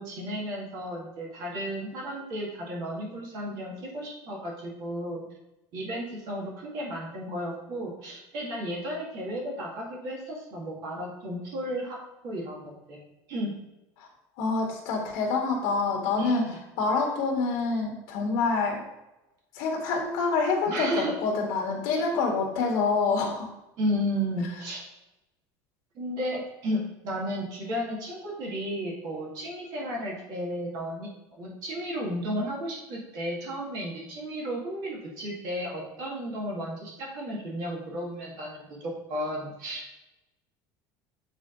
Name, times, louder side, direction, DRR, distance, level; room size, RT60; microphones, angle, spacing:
voice 1, 0.0-5.2 5.7-12.0 12.2-13.0 13.3-13.5 16.2-16.6 20.7-21.1 23.8-24.8 26.0-31.1 31.4-39.9, equal, 50° right, -3 dB, 1.8 m, -33 dB
voice 2, 14.4-16.4 16.8-18.8 19.5-23.5, left 4 dB, 60° left, 0 dB, 1.5 m, -26 dB
7.9 x 3.9 x 3.8 m, 0.95 s
cardioid pair, 175°, 9 cm